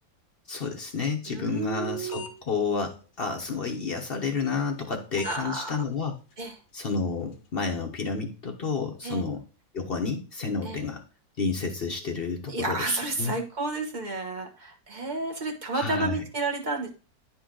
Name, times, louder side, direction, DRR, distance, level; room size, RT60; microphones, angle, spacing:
voice 1, 0.5-6.2 6.7-9.4 9.7-11.0 11.4-13.4 15.7-16.2, left 4 dB, 55° left, 3 dB, 0.6 m, -30 dB
voice 2, 1.3-2.4 5.2-5.8 6.4-6.5 9.0-9.2 10.6-10.8 12.5-16.9, right 3 dB, 30° right, 1 dB, 1.1 m, -31 dB
sound 1, 1.4-2.4 2.8-2.9 3.3-3.4 3.8-3.9 4.3-4.4 4.8-4.9 5.2-5.4 5.8-5.9 6.3-6.4 6.8-7.0 7.3-7.5, left 8 dB, 70° left, 1.6 m, -42 dB
9.4 x 4.3 x 3.7 m, 0.33 s
omnidirectional pair, 2.1 m